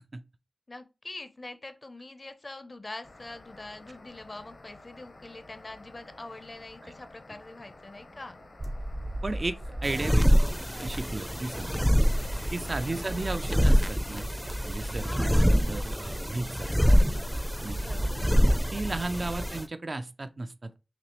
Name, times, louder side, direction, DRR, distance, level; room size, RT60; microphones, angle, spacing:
voice 1, 0.7-8.4 12.8-13.0 15.0-15.4 16.7-17.4 17.8-18.2, left 2 dB, 45° left, 0.6 m, -44 dB
sound 1, 3.0-13.8, left 2 dB, 75° left, 0.8 m, -51 dB
sound 2, 8.6-11.5 11.8-19.5, right 1 dB, 70° right, 0.8 m, -36 dB
voice 2, 9.2-10.4 10.7-11.8 12.5-14.3 14.6-17.1 17.6-17.8 18.7-20.8, right 2 dB, 55° right, 0.4 m, -34 dB
sound 3, 9.8-19.6, equal, ahead, 0.5 m, -25 dB
5.8 x 2.0 x 3.0 m
wide cardioid pair, 50°, 0 cm